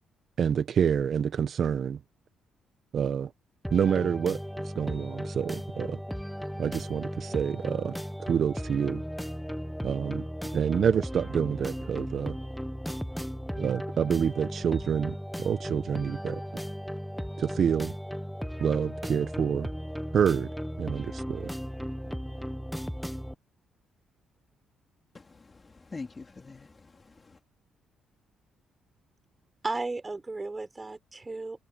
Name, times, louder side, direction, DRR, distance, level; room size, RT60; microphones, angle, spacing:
voice 1, 0.4-2.0 2.9-3.3 3.7-6.0 6.6-9.0 9.8-10.3 10.5-12.4 13.6-16.4 17.4-17.9 18.6-19.7 20.1-20.5 20.8-21.5, right 7 dB, 55° right, 1.1 m, -28 dB
sound 1, 3.6-23.3, equal, ahead, 0.8 m, -36 dB
voice 2, 25.1-27.4, left 3 dB, 30° left, 3.7 m, -45 dB
voice 3, 29.6-31.6, right 3 dB, 20° right, 6.6 m, -34 dB
cardioid pair, 90°, 0 cm